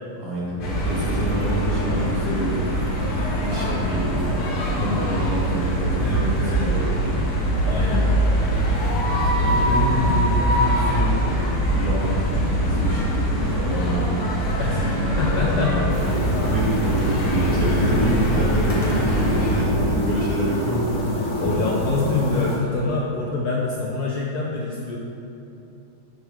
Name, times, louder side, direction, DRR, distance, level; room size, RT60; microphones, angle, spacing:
voice 1, 0.2-2.6 3.4-6.2 6.4-6.9 7.6-8.3 9.1-11.4 11.7-14.2 14.7-16.1 16.5-21.0, right 1 dB, 80° right, -6 dB, 2.4 m, -27 dB
sound 1, 0.6-19.6, equal, 60° left, 1.3 m, -23 dB
voice 2, 1.8-2.5 3.5-3.9 6.0-6.7 7.7-8.1 14.6-15.9 17.6-18.0 18.8-19.2 21.4-25.0, left 4 dB, 80° left, -3 dB, 0.9 m, -26 dB
sound 2, 15.9-22.6, equal, 40° left, 1.4 m, -26 dB
6.2 x 6.2 x 3.3 m, 2.9 s
omnidirectional pair, 2.4 m